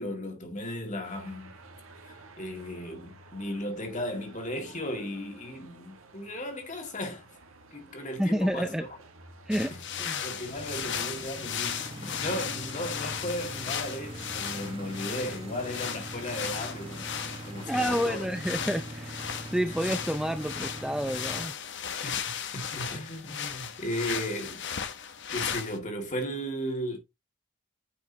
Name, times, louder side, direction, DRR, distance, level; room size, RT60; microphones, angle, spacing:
voice 1, 0.0-1.5 2.0-7.3 7.7-8.9 9.7-9.8 10.2-18.3 22.0-24.6 25.3-27.0, equal, 35° left, 2.1 m, -36 dB
sound 1, 1.0-20.6, right 2 dB, 75° right, 1.5 m, -51 dB
voice 2, 8.2-8.8 9.5-9.7 10.0-10.2 17.7-21.5, equal, 5° right, 0.5 m, -29 dB
sound 2, 9.5-25.8, left 8 dB, 55° left, 1.0 m, -36 dB
sound 3, 10.4-21.5, right 1 dB, 25° right, 1.2 m, -42 dB
9.3 x 5.3 x 2.8 m
head